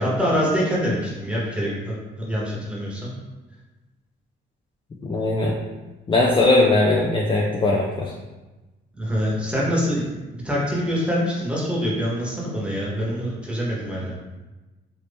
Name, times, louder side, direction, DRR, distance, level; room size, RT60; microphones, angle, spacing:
voice 1, 0.0-3.1 9.0-14.1, equal, 5° right, -6 dB, 1.2 m, -25 dB
voice 2, 5.1-5.5 6.1-8.1, left 2 dB, 25° left, -2 dB, 0.4 m, -19 dB
2.9 x 2.7 x 3.4 m, 1.1 s
cardioid pair, 90°, 20 cm